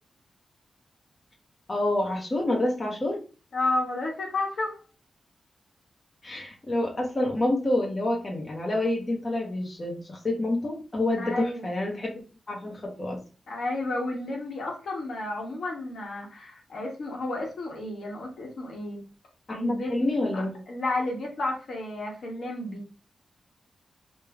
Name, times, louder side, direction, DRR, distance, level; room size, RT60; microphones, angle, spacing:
voice 1, 1.7-3.2 6.2-12.2 12.5-13.2 19.5-20.6, left 1 dB, 30° left, -2 dB, 0.7 m, -28 dB
voice 2, 3.5-4.8 11.2-11.6 13.5-19.0 19.5-19.9 20.3-22.8, left 2 dB, 75° left, -1 dB, 1.1 m, -32 dB
3.2 x 2.1 x 3.4 m, 0.35 s
wide cardioid pair, 120°, 0 cm